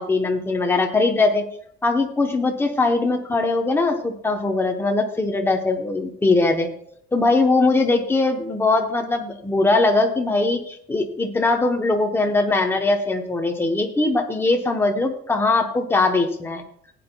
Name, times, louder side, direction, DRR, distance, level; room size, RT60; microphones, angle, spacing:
voice 1, 0.0-1.4 1.8-6.7 7.1-16.6, left 3 dB, 10° left, 3 dB, 0.8 m, -21 dB
17.0 x 8.8 x 2.2 m, 0.69 s
cardioid pair, 175°, 20 cm